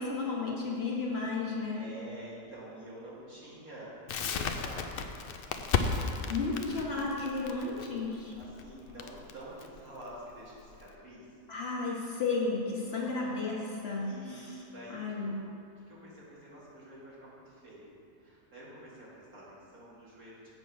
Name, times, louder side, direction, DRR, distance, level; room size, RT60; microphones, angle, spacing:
voice 1, 0.0-1.8 6.3-8.3 11.5-14.4 14.9-15.4, left 3 dB, 45° left, -3 dB, 1.3 m, -33 dB
voice 2, 1.7-5.4 8.4-11.3 12.9-13.4 14.0-15.4 15.8-17.9 18.2-20.5, right 1 dB, 75° right, -7 dB, 2.5 m, -48 dB
Crackle, 4.1-10.9, left 5 dB, 75° left, 0.5 m, -34 dB
7.8 x 5.3 x 6.2 m, 2.6 s
omnidirectional pair, 1.5 m